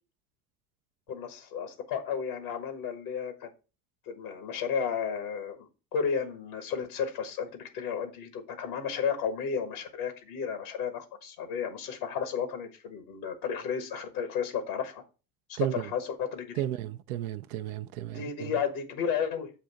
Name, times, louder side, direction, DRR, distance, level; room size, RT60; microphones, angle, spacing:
voice 1, 1.1-3.5 4.1-15.0 15.5-16.6 18.1-19.5, left 7 dB, 80° left, 1.3 m, -33 dB
voice 2, 15.6-15.9 16.6-18.5, right 13 dB, 75° right, 0.5 m, -33 dB
7.5 x 2.7 x 5.7 m
hypercardioid pair, 70°, 42 cm